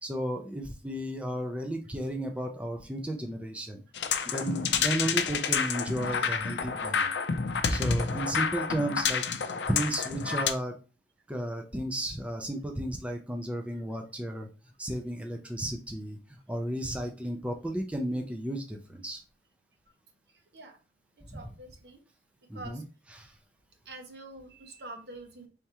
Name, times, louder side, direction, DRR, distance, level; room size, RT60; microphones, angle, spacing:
voice 1, 0.0-3.8 4.3-7.1 7.7-9.3 9.7-10.8 11.3-14.5 14.8-19.2 21.3-21.4 22.5-22.8 23.1-23.3, right 1 dB, 5° right, 3 dB, 0.4 m, -33 dB
sound 1, 3.9-10.5, left 6 dB, 80° left, 0.5 m, -29 dB
voice 2, 21.3-22.0 22.5-22.8 23.9-25.5, right 2 dB, 65° right, 4 dB, 1.0 m, -45 dB
4.3 x 3.5 x 2.9 m, 0.33 s
head